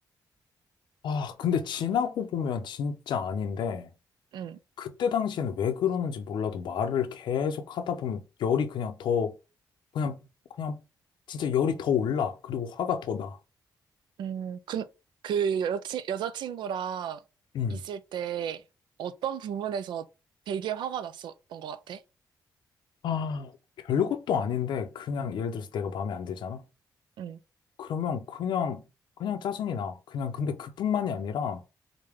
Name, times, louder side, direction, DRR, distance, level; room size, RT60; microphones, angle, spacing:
voice 1, 1.0-3.9 4.8-9.3 9.9-10.2 10.6-10.8 11.3-13.4 17.5-17.8 23.0-23.5 23.8-26.6 27.8-28.8 29.2-31.6, left 7 dB, 80° left, 0.6 m, -29 dB
voice 2, 14.2-14.9 15.2-17.2 17.7-18.6 19.0-20.1 20.5-22.0 27.2-27.4, right 8 dB, 85° right, 0.4 m, -32 dB
4.9 x 2.2 x 3.5 m
cardioid pair, 75°, 8 cm